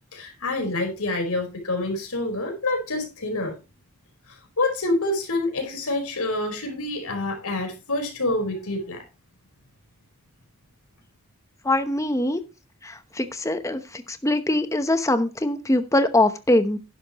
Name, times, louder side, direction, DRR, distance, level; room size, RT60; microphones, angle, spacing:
voice 1, 0.1-3.5 4.6-9.0, left 2 dB, 85° left, 3 dB, 4.6 m, -27 dB
voice 2, 11.6-12.4 13.2-13.8 14.1-16.8, left 1 dB, 15° left, 9 dB, 0.9 m, -22 dB
11.0 x 11.0 x 3.0 m, 0.28 s
head